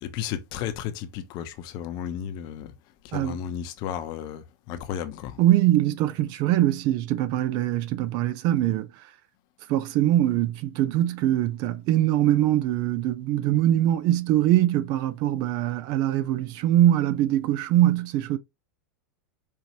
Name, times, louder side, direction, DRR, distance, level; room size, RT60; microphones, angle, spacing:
voice 1, 0.0-2.7 3.0-5.4, left 9 dB, 45° left, 0.9 m, -33 dB
voice 2, 5.4-8.9 9.7-18.4, right 13 dB, 45° right, 0.7 m, -22 dB
5.5 x 2.7 x 3.0 m
hypercardioid pair, 110°, 10 cm